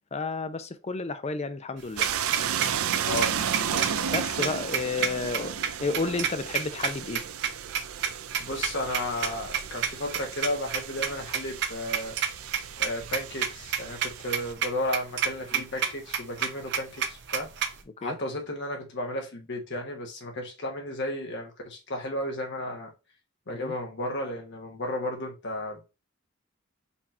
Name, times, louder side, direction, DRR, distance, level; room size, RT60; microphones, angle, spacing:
voice 1, 0.1-2.1 4.1-7.2 15.5-15.6 18.0-18.2 23.5-23.7, left 3 dB, 30° left, 0.5 m, -32 dB
sound 1, 1.8-17.8, right 8 dB, 60° right, 0.8 m, -30 dB
sound 2, 2.0-14.5, right 8 dB, 90° right, 0.5 m, -34 dB
voice 2, 3.0-3.9 8.4-12.2 12.8-17.5 18.0-22.9 23.5-25.8, left 1 dB, 60° left, 1.3 m, -33 dB
4.3 x 2.9 x 4.3 m
head